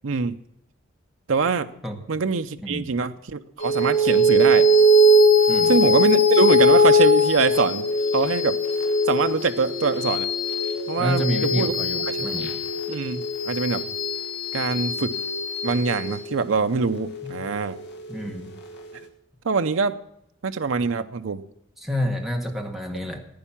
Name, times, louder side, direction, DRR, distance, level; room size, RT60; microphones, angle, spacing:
voice 1, 0.0-0.4 1.3-1.7 2.1-4.7 5.7-7.9 8.1-8.6 9.1-10.3 10.9-11.7 12.1-12.3 12.9-13.8 14.5-15.2 15.6-17.8 19.4-20.0 20.4-21.4, right 4 dB, 80° right, 8 dB, 0.6 m, -24 dB
sound 1, 3.6-18.4, left 1 dB, 55° left, 2.6 m, -21 dB
voice 2, 11.0-12.5 17.2-17.3 18.1-18.5 21.8-23.3, equal, ahead, 2 dB, 1.8 m, -28 dB
15.0 x 10.0 x 7.2 m, 0.79 s
head